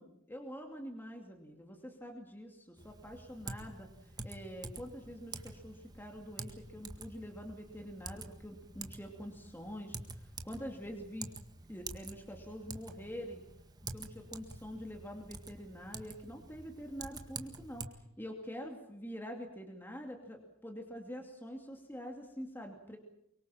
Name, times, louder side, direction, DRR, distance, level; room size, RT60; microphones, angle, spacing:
voice 1, 0.0-11.3 11.7-13.4 13.9-23.0, equal, 10° left, 2 dB, 2.6 m, -46 dB
Typing, 2.8-17.9, right 3 dB, 20° right, 1.8 m, -48 dB
24.0 x 23.5 x 7.5 m, 0.78 s
head